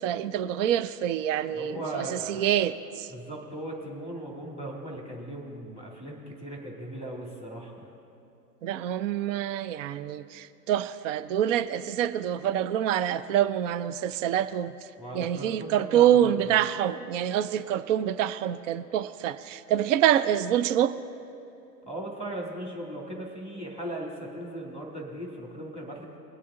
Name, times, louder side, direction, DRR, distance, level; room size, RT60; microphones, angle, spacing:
voice 1, 0.0-3.1 8.6-14.7 15.1-20.9, right 10 dB, 50° right, 14 dB, 0.6 m, -26 dB
voice 2, 1.5-2.5 3.1-7.9 15.0-16.3 21.8-26.2, right 1 dB, 15° right, -3 dB, 2.5 m, -38 dB
22.0 x 8.4 x 3.8 m, 2.9 s
hypercardioid pair, 125°, 48 cm